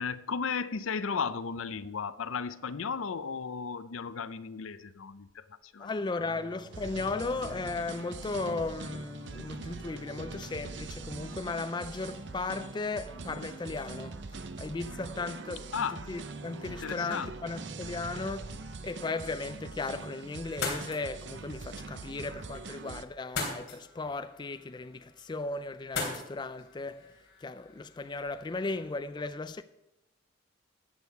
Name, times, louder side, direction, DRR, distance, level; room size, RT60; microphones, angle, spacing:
voice 1, 0.0-6.2 15.7-16.1 16.7-17.5, left 5 dB, 85° left, 0.6 m, -35 dB
voice 2, 5.8-15.7 16.1-27.1 27.4-29.6, left 3 dB, 20° left, 0.3 m, -36 dB
sound 1, 6.2-18.8, equal, 25° right, 3.8 m, -52 dB
sound 2, 6.7-23.0, right 4 dB, 60° right, 0.6 m, -43 dB
sound 3, 20.4-28.9, left 3 dB, 65° left, 3.3 m, -41 dB
13.5 x 8.4 x 4.7 m
head